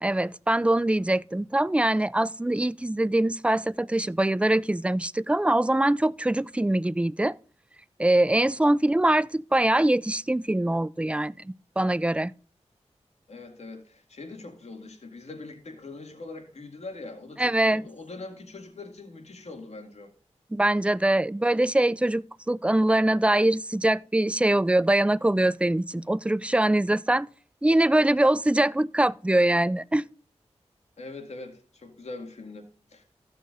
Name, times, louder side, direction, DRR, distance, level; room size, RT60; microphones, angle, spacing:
voice 1, 0.0-7.4 8.0-12.3 17.4-17.8 20.5-27.3 27.6-30.0, right 1 dB, 10° right, 0.3 m, -23 dB
voice 2, 13.3-20.1 31.0-33.0, left 3 dB, 65° left, 2.1 m, -42 dB
15.0 x 6.5 x 2.6 m
cardioid pair, 45°, 12 cm